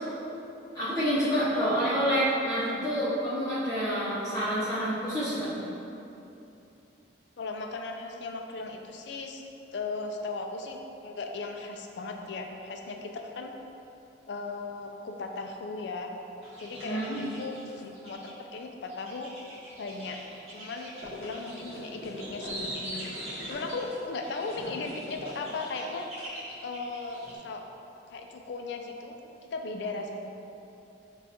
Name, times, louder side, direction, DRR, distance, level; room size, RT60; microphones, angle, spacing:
voice 1, 0.7-5.5 16.8-17.2, equal, 20° left, -13 dB, 0.8 m, -28 dB
voice 2, 7.4-9.4 9.7-13.5 14.3-16.1 16.6-19.3 19.8-20.2 20.5-23.2 23.5-26.1 26.6-27.6 28.1-29.2 29.5-30.3, left 3 dB, 65° left, 4 dB, 0.3 m, -37 dB
sound 1, 16.4-18.3 18.9-27.4, equal, 35° right, 1.1 m, -42 dB
6.1 x 2.4 x 2.9 m, 2.9 s
head